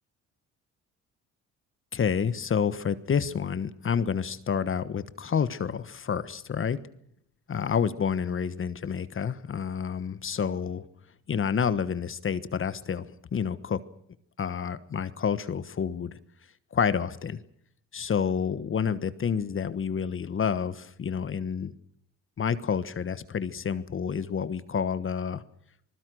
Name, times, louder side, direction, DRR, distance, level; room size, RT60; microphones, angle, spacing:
voice 1, 1.9-6.8 7.5-10.8 11.3-13.0 13.3-13.8 14.4-16.2 16.7-17.4 17.9-21.7 22.4-25.4, left 7 dB, 45° left, 14 dB, 1.3 m, -29 dB
26.5 x 20.5 x 6.3 m, 0.69 s
cardioid pair, 90°, 30 cm